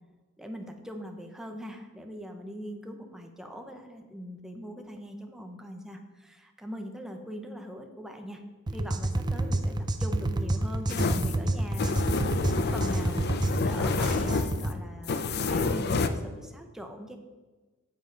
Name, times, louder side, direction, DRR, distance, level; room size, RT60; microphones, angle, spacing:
voice 1, 0.4-8.4 8.7-17.2, equal, ahead, 4 dB, 0.8 m, -42 dB
sound 1, 8.7-14.8, right 1 dB, 20° right, 0.4 m, -29 dB
sound 2, 10.9-16.1, left 3 dB, 50° left, 0.5 m, -29 dB
9.4 x 7.4 x 3.9 m, 1.3 s
head